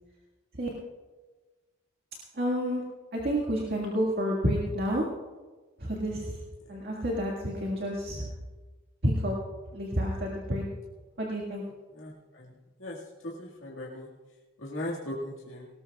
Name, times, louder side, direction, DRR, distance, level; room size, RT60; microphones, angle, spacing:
voice 1, 2.3-2.8 3.1-5.0 5.8-6.4 6.7-8.3 9.0-9.4 9.7-10.6 11.2-11.6, equal, 50° right, -3 dB, 1.9 m, -29 dB
voice 2, 11.9-13.0 13.2-14.1 14.6-15.7, left 1 dB, 65° left, -5 dB, 2.0 m, -38 dB
19.5 x 18.5 x 2.4 m, 1.3 s
head